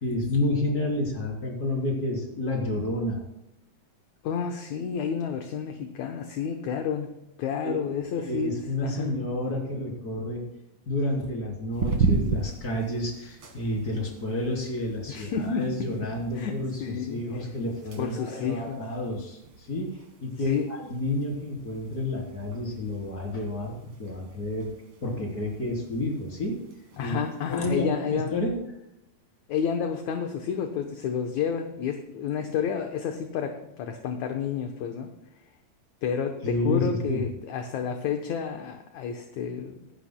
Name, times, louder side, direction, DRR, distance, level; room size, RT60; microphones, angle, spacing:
voice 1, 0.0-3.2 7.6-7.9 8.3-10.4 10.9-23.7 24.0-24.7 25.0-26.6 27.0-27.2 27.5-28.6 36.4-37.2, left 1 dB, 25° left, -2 dB, 3.6 m, -30 dB
voice 2, 4.2-7.1 7.4-9.2 15.1-15.7 16.3-17.2 18.0-18.8 20.4-20.7 27.0-28.3 29.5-35.1 36.0-39.9, left 7 dB, 70° left, 4 dB, 2.0 m, -30 dB
sound 1, 11.7-27.8, right 5 dB, 45° right, 1.7 m, -36 dB
25.0 x 11.5 x 2.2 m, 0.86 s
omnidirectional pair, 3.8 m